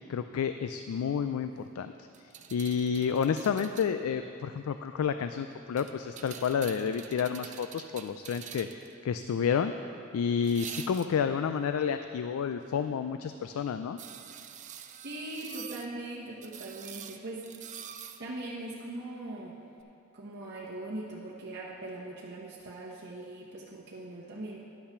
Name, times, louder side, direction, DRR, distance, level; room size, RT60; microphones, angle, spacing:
voice 1, 0.1-1.9 2.5-9.7 10.1-14.0, left 7 dB, 90° left, 9 dB, 0.3 m, -30 dB
sound 1, 2.1-3.9 5.8-8.9 10.4-11.3 14.0-15.9 16.4-18.2 19.8-19.9, right 9 dB, 35° right, 0.4 m, -46 dB
voice 2, 15.0-17.5 17.8-19.6 20.1-24.6, right 2 dB, 50° right, -6 dB, 1.1 m, -41 dB
10.5 x 5.6 x 6.6 m, 2.7 s
head